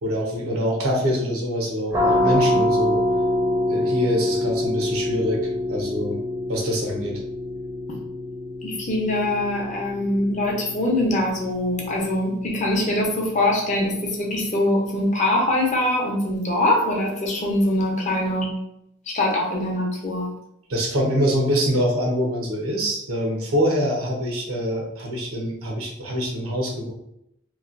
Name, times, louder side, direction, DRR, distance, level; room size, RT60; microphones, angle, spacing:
voice 1, 0.0-3.0 3.7-6.2 6.5-7.2 20.7-26.9, equal, 85° right, -1 dB, 0.8 m, -25 dB
sound 1, 1.9-13.4, left 1 dB, 10° right, 0.5 m, -26 dB
voice 2, 8.6-18.5 19.1-20.3, left 1 dB, 35° left, -1 dB, 0.6 m, -23 dB
3.0 x 2.2 x 2.5 m, 0.80 s
head